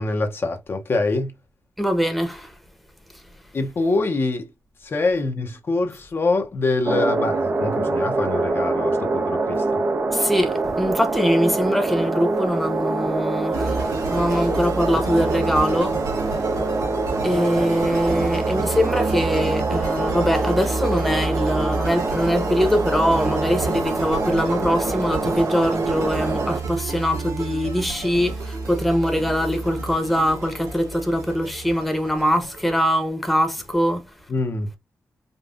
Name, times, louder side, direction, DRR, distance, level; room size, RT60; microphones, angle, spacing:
voice 1, 0.0-1.3 3.5-4.5 4.8-9.8 16.5-16.7 34.3-34.7, left 3 dB, 40° left, 0.8 m, -24 dB
voice 2, 1.8-2.5 3.1-3.2 10.1-16.0 17.2-34.1, equal, ahead, 0.9 m, -22 dB
sound 1, 6.9-26.6, right 3 dB, 35° right, 0.6 m, -25 dB
sound 2, 13.5-32.8, right 3 dB, 75° right, 2.4 m, -30 dB
5.2 x 2.3 x 2.5 m
wide cardioid pair, 140°, 6 cm